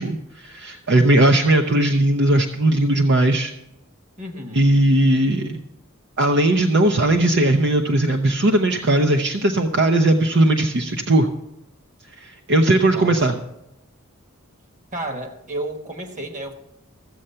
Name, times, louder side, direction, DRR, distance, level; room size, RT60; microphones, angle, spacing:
voice 1, 0.0-3.5 4.6-5.6 6.2-11.3 12.2-13.3, right 1 dB, 55° right, 4 dB, 0.7 m, -18 dB
voice 2, 4.2-4.7 12.9-13.4 14.9-16.5, right 1 dB, 35° right, 5 dB, 1.4 m, -32 dB
14.5 x 7.6 x 5.6 m, 0.85 s
head